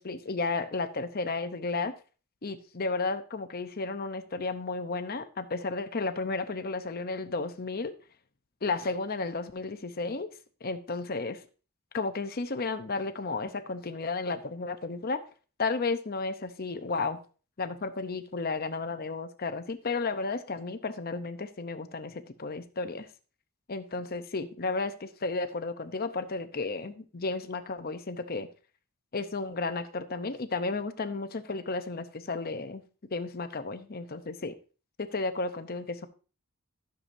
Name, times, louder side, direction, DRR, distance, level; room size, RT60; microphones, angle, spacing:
voice 1, 0.0-1.9 2.4-7.9 8.6-10.3 10.6-11.4 11.9-15.2 15.6-17.2 17.6-23.1 23.7-28.5 29.1-32.8 33.1-34.5 35.0-36.1, left 3 dB, 45° left, 9 dB, 0.7 m, -33 dB
13.0 x 7.0 x 2.7 m, 0.36 s
head